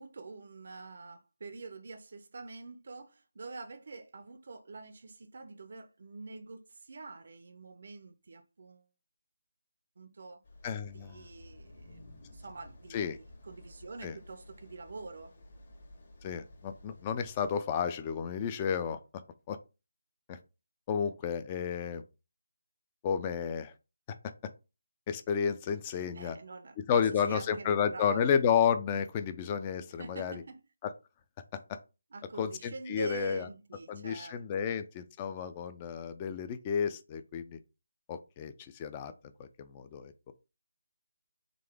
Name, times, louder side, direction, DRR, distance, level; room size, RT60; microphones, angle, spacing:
voice 1, 0.0-8.9 10.0-10.4 10.9-15.3 26.0-28.3 30.0-30.6 32.1-34.7, right 3 dB, 55° right, 0.5 m, -46 dB
sound 1, 10.4-17.5, left 1 dB, 45° left, 1.3 m, -54 dB
voice 2, 10.6-11.2 12.9-13.2 14.0-14.2 16.2-19.0 19.5-19.6 20.3-20.4 20.9-22.0 23.0-23.7 25.1-26.4 26.9-30.4 30.8-30.9 31.7-31.8 32.4-33.5 33.9-37.6 38.1-39.1 39.4-40.3, left 7 dB, 20° left, 0.4 m, -31 dB
3.8 x 2.9 x 3.4 m
figure-of-eight pair, 160°, 0 cm